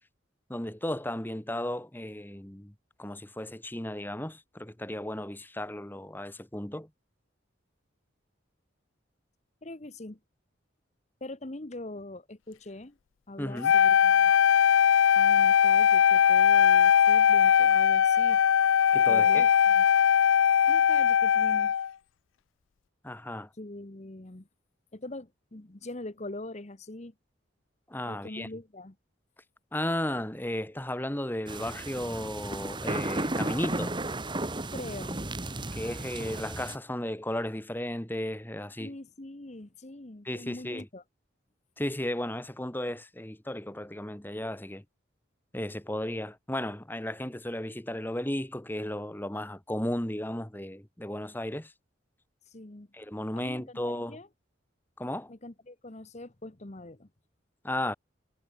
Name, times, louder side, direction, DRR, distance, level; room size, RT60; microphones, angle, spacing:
voice 1, 0.5-2.7 3.0-6.9 13.4-13.7 18.9-19.5 23.0-23.5 27.9-28.5 29.7-33.9 35.7-38.9 40.2-40.9 41.8-44.8 45.5-51.7 52.9-54.2 55.0-55.3 57.6-57.9, left 1 dB, 10° left, 1.4 m, -34 dB
voice 2, 9.6-10.2 11.2-13.0 13.3-14.3 15.1-18.4 19.1-19.8 20.7-21.7 23.6-24.5 24.9-27.1 28.1-28.9 34.7-35.2 38.8-41.0 52.5-52.9 53.4-54.3 55.3-57.1, left 2 dB, 35° left, 1.1 m, -42 dB
Wind instrument woodwind instrument, 13.6-21.9, left 8 dB, 80° left, 0.4 m, -20 dB
sound 1, 31.5-36.8, right 2 dB, 25° right, 1.7 m, -34 dB
head